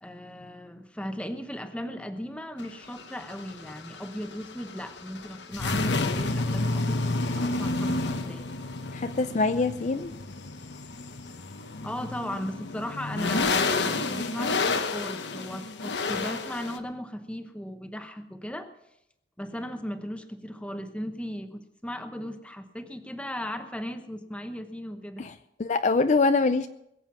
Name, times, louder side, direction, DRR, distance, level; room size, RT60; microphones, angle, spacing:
voice 1, 0.0-8.5 11.8-18.7 19.4-25.3, equal, 5° left, 8 dB, 1.0 m, -37 dB
sound 1, 2.6-16.8, left 3 dB, 85° left, 1.0 m, -30 dB
voice 2, 8.9-10.1 25.2-25.3 25.6-26.7, left 3 dB, 45° left, 10 dB, 0.5 m, -24 dB
21.5 x 7.8 x 6.0 m, 0.83 s
head